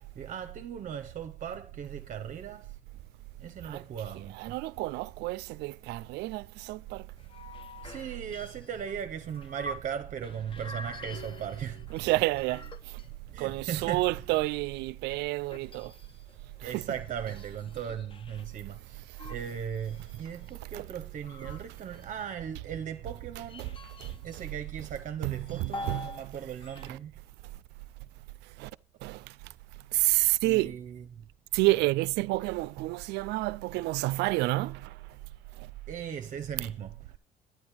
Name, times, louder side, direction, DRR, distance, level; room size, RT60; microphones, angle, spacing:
voice 1, 0.2-2.7 3.4-4.6 7.8-12.6 13.3-14.4 16.6-19.0 19.3-23.7 24.2-27.1 30.4-31.1 31.6-31.9 35.9-37.2, right 8 dB, 50° right, 0.7 m, -38 dB
voice 2, 4.1-7.0 11.9-12.6 13.4-15.9 16.7-16.8 20.7-20.8 23.6-23.7 24.0-24.1 25.2-26.3 28.6-28.7 29.0-29.2 29.9-30.8 31.5-34.9, right 19 dB, 85° right, 0.4 m, -29 dB
sound 1, 7.2-10.0 10.2-13.3 13.8-18.4 19.1-22.2 22.9-24.5 24.8-26.3 26.5-26.9, left 2 dB, 30° left, 0.8 m, -46 dB
9.6 x 9.3 x 4.5 m
cardioid pair, 110°, 17 cm